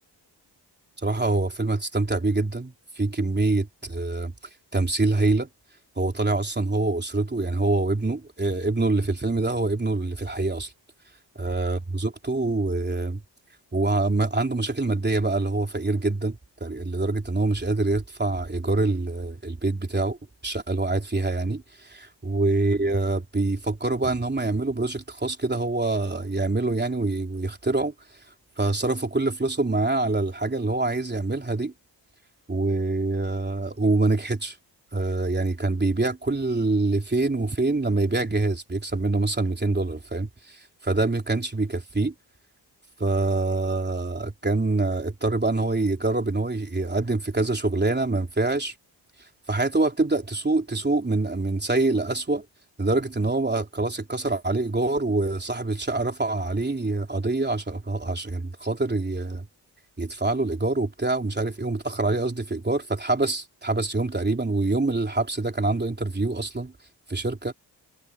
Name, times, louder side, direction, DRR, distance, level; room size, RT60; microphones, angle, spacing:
voice 1, 1.0-4.3 4.7-5.5 6.0-10.7 11.4-13.2 13.7-20.2 20.4-27.9 28.6-31.7 32.5-34.6 34.9-42.1 43.0-48.7 49.5-52.5 52.8-59.5 60.0-66.7 67.1-67.5, right 2 dB, 25° right, 3.6 m, -25 dB
cardioid pair, 90°, 43 cm